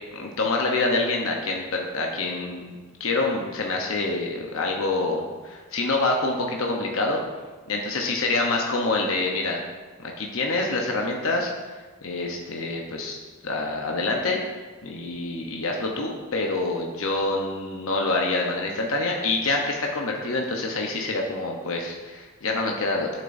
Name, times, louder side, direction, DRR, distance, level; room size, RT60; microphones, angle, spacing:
voice 1, 0.1-7.2 7.7-9.6 10.0-11.5 12.0-13.2 13.4-14.4 14.8-23.2, left 2 dB, 75° left, 1 dB, 0.8 m, -26 dB
8.6 x 7.4 x 2.6 m, 1.4 s
head